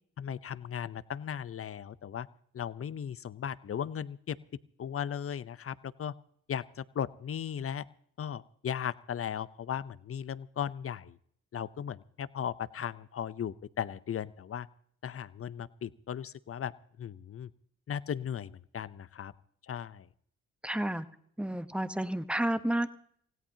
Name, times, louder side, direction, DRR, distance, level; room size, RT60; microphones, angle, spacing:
voice 1, 0.2-2.3 2.5-4.4 4.8-6.1 6.5-7.8 8.2-11.2 11.5-14.7 15.0-16.7 17.0-17.5 17.9-19.3 19.6-20.1, left 8 dB, 40° left, 18 dB, 0.7 m, -37 dB
voice 2, 20.6-21.1 21.4-22.9, right 1 dB, 5° right, 12 dB, 1.0 m, -31 dB
26.0 x 17.0 x 2.9 m, 0.64 s
hypercardioid pair, 50°, 37 cm